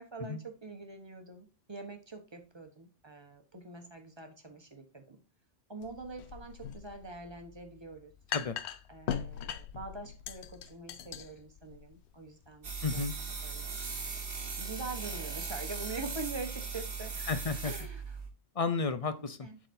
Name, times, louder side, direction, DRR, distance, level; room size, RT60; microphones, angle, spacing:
voice 1, 0.0-5.2 5.7-8.1 8.9-14.2 14.6-17.1 17.6-18.2 19.4-19.6, right 3 dB, 25° right, 4 dB, 1.1 m, -44 dB
sound 1, 5.8-13.6, left 9 dB, 85° left, 0.9 m, -42 dB
sound 2, 12.6-18.3, right 5 dB, 60° right, 1.5 m, -38 dB
voice 2, 12.8-13.1 17.3-17.7 18.6-19.5, left 4 dB, 40° left, 11 dB, 0.6 m, -32 dB
11.5 x 3.9 x 2.7 m, 0.35 s
omnidirectional pair, 1.1 m